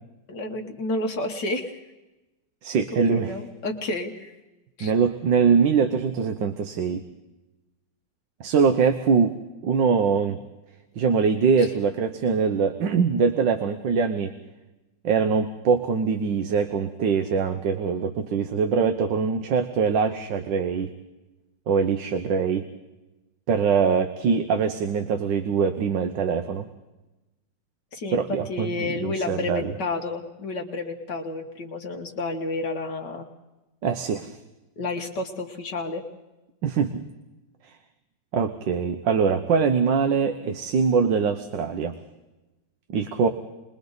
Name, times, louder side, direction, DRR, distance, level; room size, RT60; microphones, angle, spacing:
voice 1, 0.3-1.8 2.9-4.3 4.8-4.9 11.6-11.7 27.9-28.2 28.5-33.2 34.8-36.0, left 2 dB, 70° left, 2 dB, 2.1 m, -30 dB
voice 2, 2.6-3.3 4.8-7.0 8.4-10.4 11.0-14.3 15.0-20.9 21.7-22.7 23.5-26.7 28.1-29.7 33.8-34.4 36.6-37.0 38.3-42.0 42.9-43.3, right 6 dB, 80° right, 8 dB, 1.7 m, -23 dB
29.5 x 22.0 x 4.0 m, 1.0 s
omnidirectional pair, 2.0 m